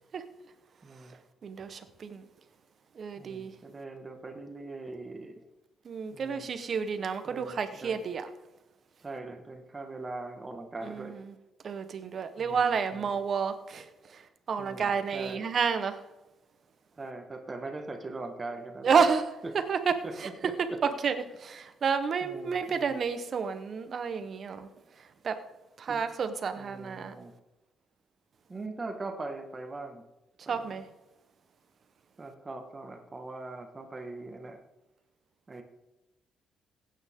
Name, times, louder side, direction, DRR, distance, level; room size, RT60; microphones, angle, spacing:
voice 1, 0.8-1.2 3.2-5.4 6.1-6.5 7.2-8.0 9.0-11.2 12.4-13.1 14.6-15.4 17.0-19.0 20.0-20.1 20.5-20.8 22.2-23.0 25.9-26.0 26.6-27.3 28.5-30.0 30.5-30.9 32.2-34.6 35.5-35.6, right 3 dB, 25° right, 1.7 m, -41 dB
voice 2, 1.4-2.2 2.9-3.5 5.8-8.3 10.8-11.3 11.6-14.2 14.5-16.0 18.8-19.3 19.5-19.9 20.2-20.3 20.8-24.7 25.2-25.4 25.8-27.1 30.5-30.8, right 6 dB, 50° right, 1.2 m, -30 dB
16.0 x 9.0 x 3.7 m
cardioid pair, 90°, 0 cm